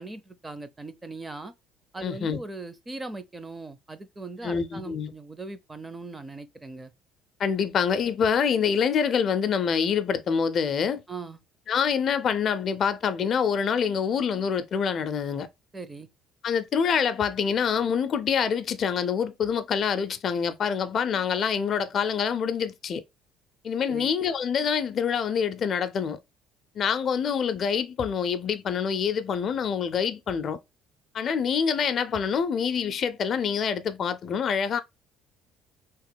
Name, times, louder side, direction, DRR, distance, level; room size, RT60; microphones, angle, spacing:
voice 1, 0.0-1.5 1.9-6.9 11.1-11.4 15.7-16.1 23.9-24.1, right 3 dB, 15° right, 0.4 m, -39 dB
voice 2, 2.0-2.4 4.4-5.1 7.4-11.0 11.7-15.5 16.4-23.0 23.6-26.2 26.8-30.6 31.1-34.8, left 7 dB, 45° left, 0.4 m, -26 dB
3.0 x 2.9 x 3.4 m
cardioid pair, 120°, 0 cm